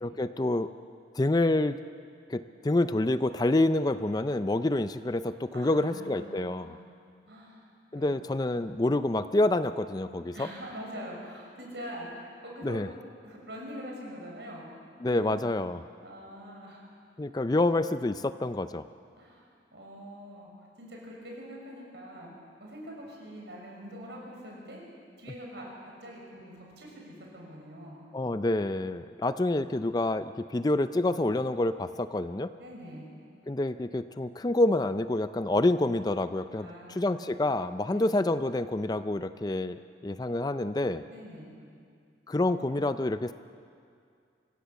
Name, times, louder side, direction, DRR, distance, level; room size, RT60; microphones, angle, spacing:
voice 1, 0.0-0.7 1.1-1.8 2.3-6.8 7.9-10.5 12.6-12.9 15.0-15.8 17.2-18.9 28.1-32.5 33.5-41.0 42.3-43.3, left 2 dB, 20° left, 11 dB, 0.4 m, -27 dB
voice 2, 5.5-6.8 7.3-7.6 7.9-8.1 10.3-12.9 13.2-14.7 15.0-15.4 16.0-16.8 19.2-19.4 19.7-20.5 20.8-22.3 22.6-24.8 25.2-28.1 32.6-33.1 36.6-37.4 37.9-38.1 41.1-41.5, equal, 70° right, -2 dB, 6.3 m, -44 dB
25.0 x 16.5 x 7.1 m, 2.3 s
head